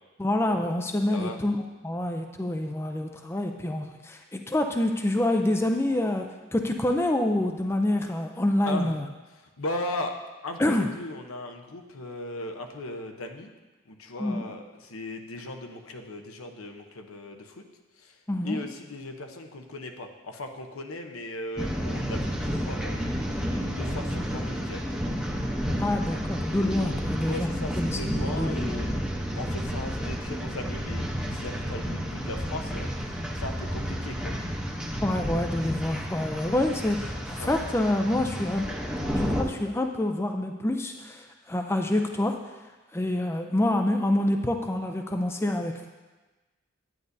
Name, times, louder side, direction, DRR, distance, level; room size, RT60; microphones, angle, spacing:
voice 1, 0.2-1.6 1.8-6.3 6.5-9.1 10.6-10.9 14.2-14.5 18.3-18.6 25.8-27.5 27.8-28.6 35.0-38.7 39.1-42.4 42.9-45.9, left 1 dB, 10° left, 4 dB, 0.4 m, -27 dB
voice 2, 8.7-9.0 9.6-10.2 10.4-13.5 13.9-17.6 18.0-18.2 18.4-23.0 23.5-25.1 26.6-26.9 27.3-29.0 29.3-34.4 37.4-37.5, left 2 dB, 90° left, 4 dB, 0.9 m, -37 dB
sound 1, 21.6-39.4, equal, 5° right, 0.8 m, -31 dB
10.5 x 9.5 x 2.7 m, 1.2 s
head